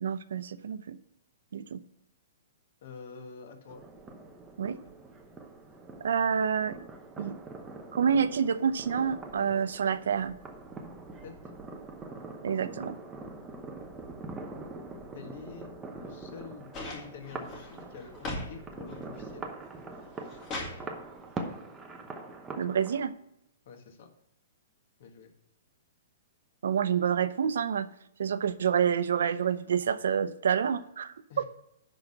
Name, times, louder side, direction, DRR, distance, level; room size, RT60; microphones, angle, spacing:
voice 1, 0.0-1.0 1.5-1.8 4.6-4.8 6.0-6.8 7.2-7.4 7.9-10.4 12.4-13.0 22.6-23.1 26.6-27.9 28.2-31.4, right 7 dB, 80° right, 14 dB, 0.6 m, -28 dB
voice 2, 2.8-3.8 11.2-11.3 15.1-19.5 23.7-24.1 25.0-25.3 31.3-31.4, left 6 dB, 45° left, 5 dB, 1.6 m, -47 dB
sound 1, 3.7-23.1, right 3 dB, 10° right, 0.8 m, -43 dB
Puzzle box with pieces, 16.7-18.5 18.9-19.4 19.9-20.8 22.0-22.1, left 2 dB, 20° left, 2.0 m, -39 dB
10.5 x 3.9 x 7.0 m, 0.80 s
hypercardioid pair, 170°, 0 cm